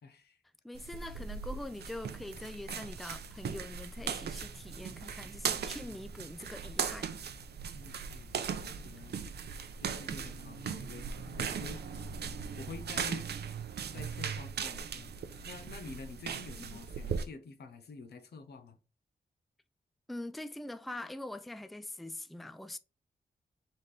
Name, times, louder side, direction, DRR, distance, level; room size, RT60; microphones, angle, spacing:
voice 1, 0.0-0.4 5.8-6.0 7.7-9.3 9.8-12.1 12.6-13.3 13.9-18.8, left 4 dB, 90° left, 0.8 m, -48 dB
voice 2, 0.6-7.1 16.6-16.7 20.1-22.8, left 1 dB, ahead, 0.3 m, -43 dB
sound 1, 0.8-17.2, right 6 dB, 85° right, 0.6 m, -39 dB
4.1 x 4.0 x 3.3 m
wide cardioid pair, 110°, 17 cm